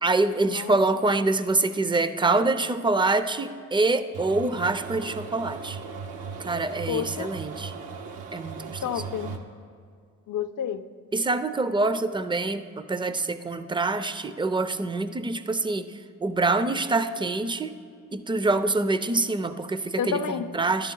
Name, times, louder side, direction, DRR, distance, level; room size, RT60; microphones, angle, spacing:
voice 1, 0.0-5.8 6.4-7.7 8.3-8.8 11.1-15.9 16.2-17.8 18.1-20.9, right 3 dB, 15° right, 12 dB, 0.5 m, -25 dB
sound 1, 4.1-9.4, right 5 dB, 70° right, 0.8 m, -38 dB
voice 2, 6.9-7.3 8.8-9.4 10.3-10.8 20.0-20.5, left 8 dB, 60° left, 10 dB, 0.6 m, -30 dB
11.0 x 8.4 x 3.8 m, 2.2 s
supercardioid pair, 50°, 36 cm